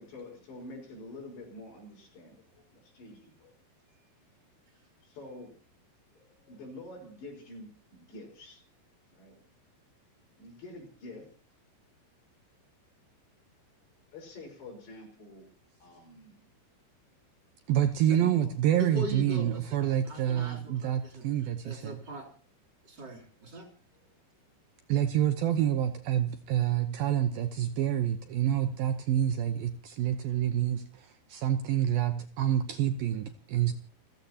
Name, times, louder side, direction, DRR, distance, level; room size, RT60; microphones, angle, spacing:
voice 1, 0.0-3.5 5.0-5.5 6.5-8.6 9.1-9.4 10.4-11.3 14.1-15.5 15.8-16.4 18.1-18.6, left 2 dB, 65° left, 0 dB, 6.6 m, -47 dB
voice 2, 6.1-6.5 18.7-21.2 21.6-22.3 22.9-23.7, right 1 dB, 25° right, 1 dB, 3.3 m, -41 dB
voice 3, 17.7-22.0 24.9-33.7, right 11 dB, 75° right, 9 dB, 2.2 m, -28 dB
30.0 x 15.5 x 2.9 m, 0.39 s
omnidirectional pair, 5.4 m